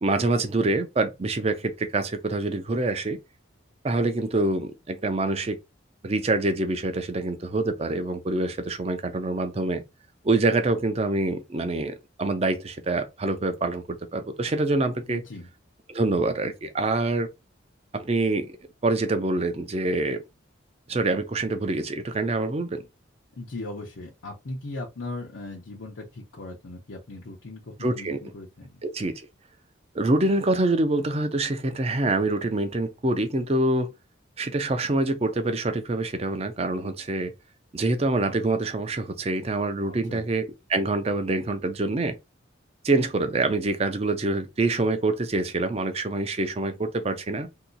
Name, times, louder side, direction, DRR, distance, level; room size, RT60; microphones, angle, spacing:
voice 1, 0.0-3.2 3.8-5.6 6.0-9.8 10.2-15.2 15.9-17.3 17.9-18.6 18.8-20.2 20.9-22.8 27.8-28.2 28.8-29.1 29.9-33.9 34.4-37.3 37.7-40.4 40.7-42.1 42.8-47.5, right 2 dB, 30° right, 0.5 m, -25 dB
voice 2, 15.1-15.5 23.4-28.8 40.0-40.3, left 2 dB, 90° left, 0.8 m, -38 dB
2.8 x 2.3 x 3.8 m
head